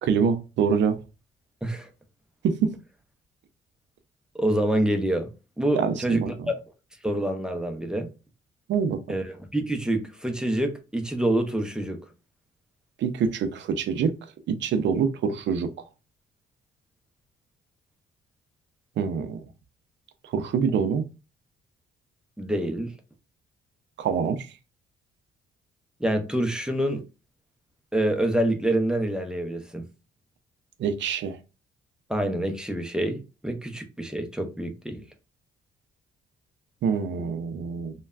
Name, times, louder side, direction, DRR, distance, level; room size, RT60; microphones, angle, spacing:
voice 1, 0.0-1.0 2.4-2.7 5.7-6.3 8.7-9.0 13.0-14.1 14.5-15.7 19.0-19.4 20.3-21.0 24.0-24.5 30.8-31.4 36.8-37.9, right 6 dB, 65° right, 0.5 m, -25 dB
voice 2, 4.4-5.3 5.6-6.6 7.0-8.1 9.1-12.0 22.4-22.9 26.0-27.0 27.9-29.8 32.1-35.0, right 1 dB, 5° right, 0.5 m, -26 dB
3.2 x 2.2 x 2.3 m
cardioid pair, 90°, 20 cm